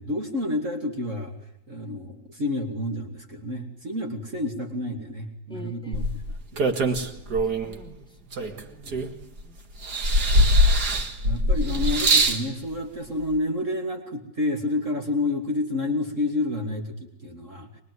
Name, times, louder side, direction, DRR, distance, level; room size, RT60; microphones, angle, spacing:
voice 1, 0.0-1.3 1.7-6.1 6.5-7.2 8.8-9.0 11.2-17.7, left 2 dB, 45° right, 3 dB, 3.0 m, -29 dB
voice 2, 5.5-5.9 7.6-9.0 9.4-9.6, right 1 dB, 5° left, 3 dB, 4.0 m, -47 dB
sound 1, 5.9-7.7 8.3-9.4 9.8-12.4 13.3-13.4, equal, 70° right, 2.7 m, -22 dB
23.0 x 23.0 x 9.6 m, 0.83 s
omnidirectional pair, 1.8 m